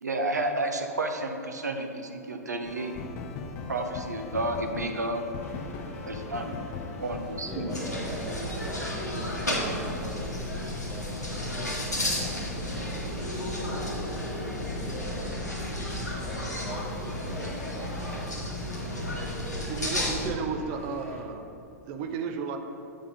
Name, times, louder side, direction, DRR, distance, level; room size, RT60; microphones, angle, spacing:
voice 1, 0.0-2.9 3.7-5.2 6.0-6.5 7.0-7.7, right 2 dB, 80° right, 4 dB, 0.8 m, -31 dB
sound 1, 2.6-7.9, left 4 dB, 40° left, 0.6 m, -39 dB
sound 2, 5.4-21.2, left 1 dB, 60° left, 1.3 m, -46 dB
voice 2, 7.0-10.3 10.6-11.7 12.0-14.1 14.7-15.3 16.2-18.4, right 1 dB, 10° right, -6 dB, 1.0 m, -44 dB
sound 3, 7.7-20.3, left 1 dB, 85° left, 1.4 m, -32 dB
voice 3, 19.7-21.4 21.9-22.6, right 5 dB, 40° right, 6 dB, 0.7 m, -33 dB
7.7 x 3.6 x 5.6 m, 2.7 s
figure-of-eight pair, 100°, 9 cm